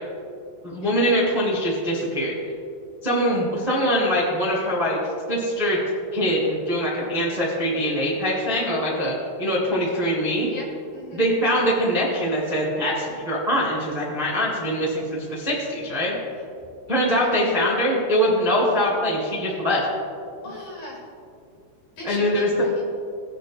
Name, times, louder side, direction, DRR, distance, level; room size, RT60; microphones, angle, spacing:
voice 1, 0.6-2.3 3.0-5.0 5.3-5.8 6.1-10.5 11.1-16.1 16.9-19.8 22.0-22.5, equal, 30° right, -7 dB, 0.7 m, -23 dB
voice 2, 20.4-21.1 22.0-22.8, left 1 dB, 55° left, -4 dB, 3.0 m, -38 dB
19.0 x 9.1 x 2.2 m, 2.4 s
omnidirectional pair, 5.8 m